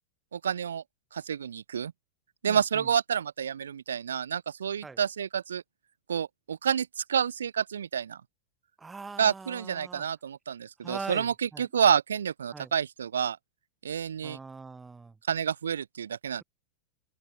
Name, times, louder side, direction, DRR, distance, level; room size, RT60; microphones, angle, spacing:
voice 1, 0.3-0.8 1.1-1.9 2.4-5.6 6.1-8.2 9.2-13.4 13.8-14.4 15.3-16.4, right 8 dB, 65° right, 1.0 m, -29 dB
voice 2, 2.5-2.9 4.8-5.0 8.8-10.0 10.8-11.6 12.5-12.7 14.2-15.1, right 4 dB, 10° right, 3.2 m, -42 dB
figure-of-eight pair, 90°, 0 cm